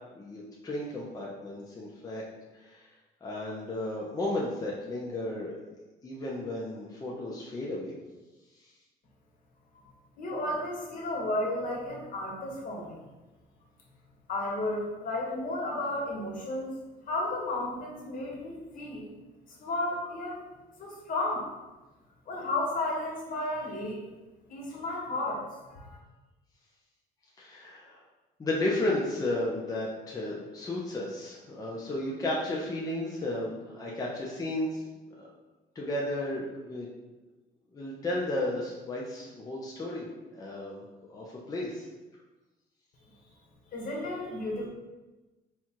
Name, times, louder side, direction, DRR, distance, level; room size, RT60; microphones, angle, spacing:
voice 1, 0.2-2.2 2.5-2.9 3.2-5.5 6.0-7.9 8.6-8.7 27.4-28.0 28.4-34.8 35.2-35.3 35.7-36.9 37.7-40.1 40.3-40.8 41.1-41.9, left 1 dB, 20° left, -4 dB, 0.7 m, -33 dB
voice 2, 10.2-13.0 14.3-16.7 17.1-19.1 19.6-20.4 20.8-21.5 22.3-24.0 24.5-25.4 25.7-26.0 43.7-44.7, left 2 dB, 55° left, -3 dB, 1.4 m, -33 dB
4.4 x 2.4 x 4.5 m, 1.1 s
cardioid pair, 110°, 17 cm